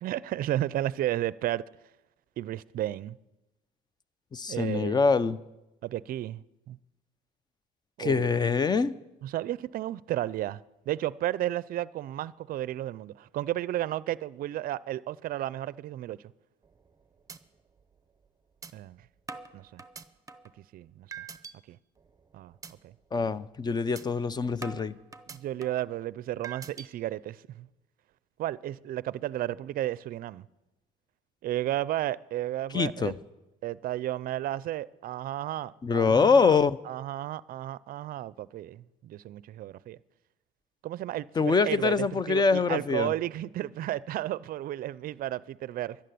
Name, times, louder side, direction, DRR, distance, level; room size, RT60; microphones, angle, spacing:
voice 1, 0.0-1.7 2.4-3.2 4.5-5.0 5.8-6.8 8.0-8.4 9.2-10.6 10.9-16.2 18.7-19.0 19.5-19.8 20.7-21.2 21.7-21.8 22.3-22.5 22.8-22.9 25.3-27.7 28.4-30.4 31.4-33.1 33.6-36.6 36.9-40.0 40.8-46.0, right 13 dB, 60° right, 0.5 m, -33 dB
voice 2, 4.3-5.4 8.0-9.0 23.1-25.0 32.7-33.1 35.8-36.8 41.4-43.1, left 5 dB, 25° left, 0.6 m, -24 dB
sound 1, 16.6-16.9 17.3-17.4 17.8-17.9 18.6-18.7 19.3-20.6 21.1-21.5 22.0-22.2 22.6-22.7 23.1-23.3 24.0-24.1 24.6-25.9 26.4-26.9, right 5 dB, 20° right, 0.7 m, -43 dB
11.5 x 11.0 x 9.3 m
cardioid pair, 110°, 17 cm